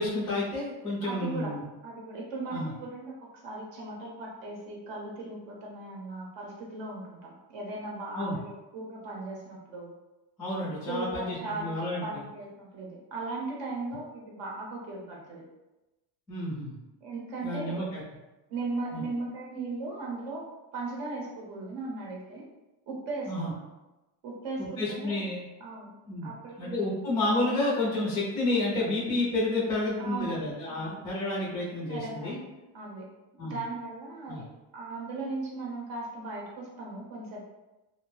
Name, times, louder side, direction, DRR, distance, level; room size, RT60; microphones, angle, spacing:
voice 1, 0.0-1.6 2.5-2.7 8.1-8.4 10.4-12.2 16.3-16.8 17.4-18.0 18.9-19.0 23.3-23.5 24.8-25.4 26.1-26.3 26.6-32.4 33.4-33.6 34.3-34.4, left 2 dB, 10° left, -6 dB, 0.3 m, -30 dB
voice 2, 1.0-1.5 1.8-9.9 10.6-15.4 17.0-17.8 18.5-20.4 20.7-22.4 22.9-23.6 24.2-25.2 25.6-25.9 26.2-26.9 30.0-31.0 31.9-32.4 32.7-33.1 33.4-34.4 34.7-37.4, right 3 dB, 60° right, -3 dB, 0.8 m, -37 dB
2.5 x 2.1 x 3.1 m, 1.0 s
cardioid pair, 165°, 48 cm